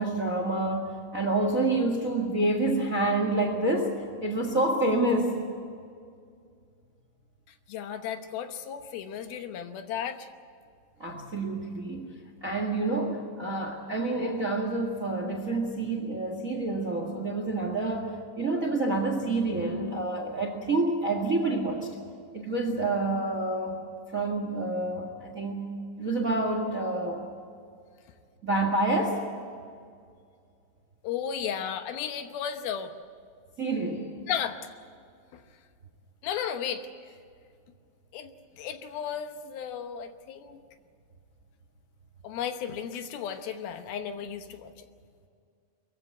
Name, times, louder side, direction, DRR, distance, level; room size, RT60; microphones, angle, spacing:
voice 1, 0.0-3.9 4.2-5.3 11.0-21.9 22.3-23.8 24.1-25.7 26.0-27.3 28.4-29.2 33.6-34.1, right 2 dB, 35° right, 4 dB, 1.4 m, -28 dB
voice 2, 7.7-10.3 31.0-32.9 34.3-34.6 35.3-35.4 36.2-36.9 38.1-40.6 42.2-44.9, left 8 dB, 75° left, 8 dB, 2.8 m, -34 dB
22.5 x 15.0 x 9.5 m, 2.2 s
omnidirectional pair, 4.5 m